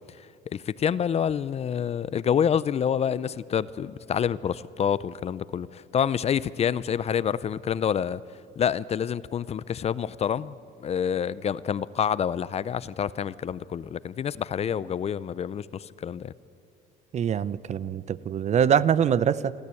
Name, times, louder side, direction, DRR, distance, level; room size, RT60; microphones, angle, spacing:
voice 1, 0.5-8.2 8.6-10.6 10.8-16.3, left 8 dB, 40° left, 0.5 m, -27 dB
voice 2, 17.1-19.5, right 8 dB, 40° right, 0.6 m, -24 dB
28.0 x 12.5 x 8.4 m
cardioid pair, 110°, 17 cm